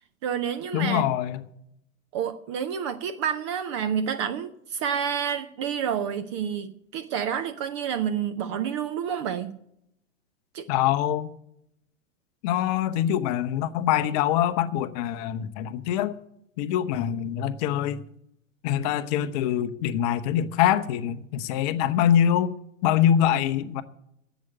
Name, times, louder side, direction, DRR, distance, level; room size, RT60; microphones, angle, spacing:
voice 1, 0.2-1.0 2.1-9.5 10.5-10.7, right 8 dB, 25° right, 0.4 m, -29 dB
voice 2, 0.7-1.4 10.7-11.3 12.4-16.1 16.6-18.0 18.6-22.5 22.8-23.8, left 10 dB, 30° left, 0.7 m, -24 dB
10.5 x 8.0 x 9.1 m
figure-of-eight pair, 105°, 40 cm